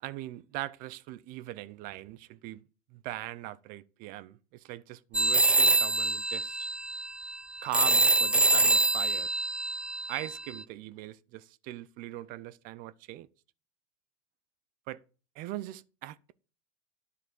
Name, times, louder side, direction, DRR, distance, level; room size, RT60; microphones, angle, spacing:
voice 1, 0.0-2.6 2.9-6.7 7.6-9.3 10.1-13.3 14.9-15.0 15.4-16.3, right 15 dB, 55° right, 0.6 m, -40 dB
sound 1, 5.1-10.6, right 2 dB, 5° right, 0.4 m, -25 dB
10.0 x 4.7 x 7.7 m
supercardioid pair, 115°, 18 cm